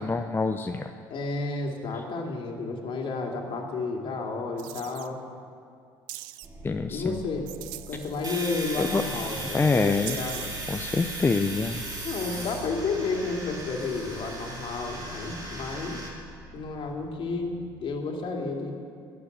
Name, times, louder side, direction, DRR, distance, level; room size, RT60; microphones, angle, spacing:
voice 1, 0.0-0.9 6.6-7.2 8.8-9.0 9.5-10.2 10.7-11.8, left 4 dB, 20° left, 6 dB, 0.6 m, -26 dB
voice 2, 1.1-5.2 6.9-7.5 7.9-10.5 12.0-16.0 16.5-18.7, left 3 dB, 50° left, 1 dB, 2.3 m, -31 dB
sound 1, 4.6-5.1 6.1-6.5 7.5-8.7 10.0-10.7, right 16 dB, 80° right, 0.5 m, -41 dB
sound 2, 6.4-18.0, right 2 dB, 20° right, 2.3 m, -45 dB
Domestic sounds home sounds, 8.2-16.1, right 1 dB, 40° right, 4.3 m, -37 dB
11.5 x 10.0 x 8.2 m, 2.4 s
hypercardioid pair, 65°, 11 cm